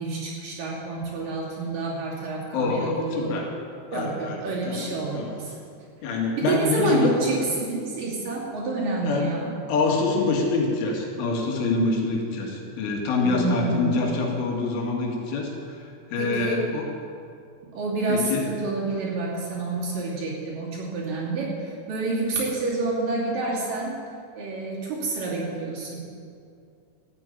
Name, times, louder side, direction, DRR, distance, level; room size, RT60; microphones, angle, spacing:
voice 1, 0.0-3.3 3.9-5.5 6.4-9.5 13.2-13.9 16.2-16.6 17.7-24.0 24.4-26.0, right 3 dB, 50° right, -5 dB, 4.0 m, -28 dB
voice 2, 2.5-3.5 3.9-4.9 5.1-5.4 6.0-7.1 9.0-9.3 9.7-16.9 18.1-18.5, left 3 dB, 85° left, 0 dB, 4.6 m, -25 dB
14.0 x 9.2 x 9.3 m, 2.4 s
omnidirectional pair, 5.5 m